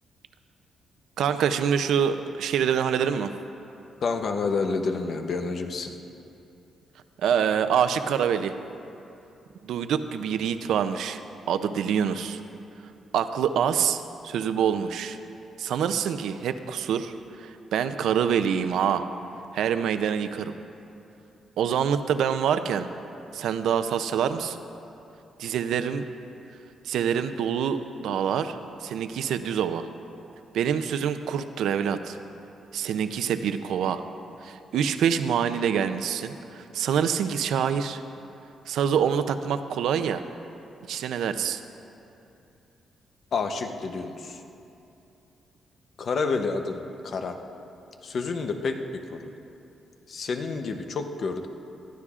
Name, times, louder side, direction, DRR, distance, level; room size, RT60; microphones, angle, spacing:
voice 1, 1.2-3.3 7.2-8.6 9.6-11.2 11.5-12.4 13.1-15.2 15.6-17.1 17.4-19.0 19.5-20.5 21.6-22.9 23.3-24.6 25.4-26.0 26.8-29.9 30.5-32.2 32.7-34.0 34.4-38.0 38.7-40.2 40.9-41.6, right 8 dB, 85° right, 9 dB, 0.5 m, -26 dB
voice 2, 4.0-5.9 43.3-44.4 46.0-47.4 48.0-49.2 50.1-51.5, left 4 dB, 45° left, 6 dB, 0.7 m, -29 dB
19.5 x 13.5 x 2.4 m, 2.8 s
cardioid pair, 160°, 0 cm